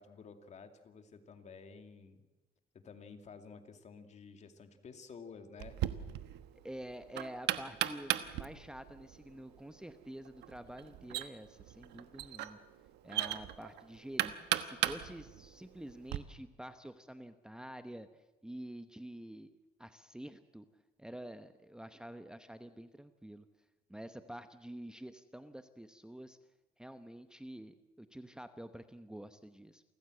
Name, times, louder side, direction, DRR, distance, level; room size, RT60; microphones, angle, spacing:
voice 1, 0.0-2.2 2.7-5.8, left 5 dB, 40° left, 7 dB, 2.5 m, -52 dB
Knock, 5.6-16.2, right 13 dB, 85° right, 1.2 m, -38 dB
voice 2, 6.6-12.6 13.0-18.1 18.4-19.5 19.8-20.6 21.0-23.5 23.9-26.4 26.8-29.8, right 1 dB, 5° right, 9 dB, 1.0 m, -48 dB
28.5 x 15.0 x 7.8 m, 1.1 s
cardioid pair, 110°, 17 cm